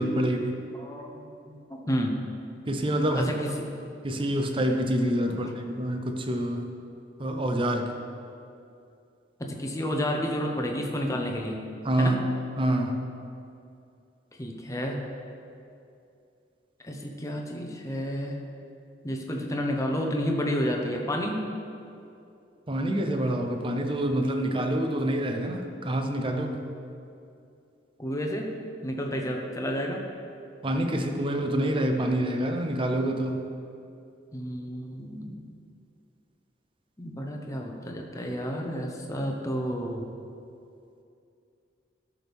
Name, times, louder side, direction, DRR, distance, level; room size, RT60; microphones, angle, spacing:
voice 1, 0.0-0.6 2.7-3.3 4.0-6.7 7.2-7.9 11.8-12.2 12.6-12.9 22.7-26.6 30.6-33.4, right 1 dB, 30° right, 5 dB, 0.7 m, -27 dB
voice 2, 0.7-2.2 3.1-3.5 5.3-5.4 9.4-11.6 12.0-12.1 14.3-15.0 16.8-18.4 19.0-21.5 28.0-28.5 28.8-30.0 34.3-35.4 37.0-40.1, equal, 20° left, 1 dB, 0.9 m, -31 dB
13.5 x 6.3 x 3.5 m, 2.6 s
head